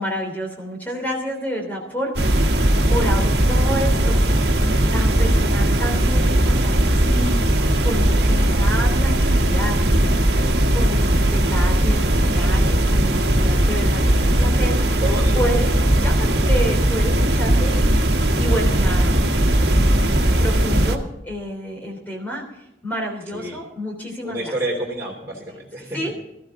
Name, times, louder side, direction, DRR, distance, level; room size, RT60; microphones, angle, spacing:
voice 1, 0.0-4.3 4.6-15.0 15.3-18.0 18.4-19.2 19.6-24.5 25.9-26.1, equal, 10° left, 1 dB, 3.2 m, -29 dB
sound 1, 2.1-21.0, right 1 dB, 65° right, 1.6 m, -18 dB
voice 2, 15.0-15.5 15.8-15.9 23.3-23.6 24.2-26.0, right 1 dB, 15° right, -5 dB, 3.3 m, -29 dB
17.5 x 14.0 x 3.7 m, 0.86 s
head